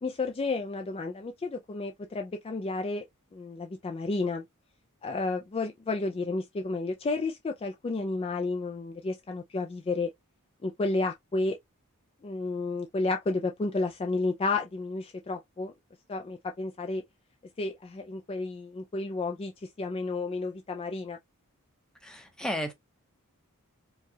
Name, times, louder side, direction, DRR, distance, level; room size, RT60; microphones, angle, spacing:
voice 1, 0.0-3.0 3.3-4.4 5.0-10.1 10.6-11.6 12.2-15.7 16.1-17.0 17.6-19.5 19.8-21.2, left 3 dB, 25° left, 0.3 m, -31 dB
voice 2, 22.0-22.7, equal, 5° left, 0.8 m, -33 dB
4.7 x 2.3 x 2.7 m
head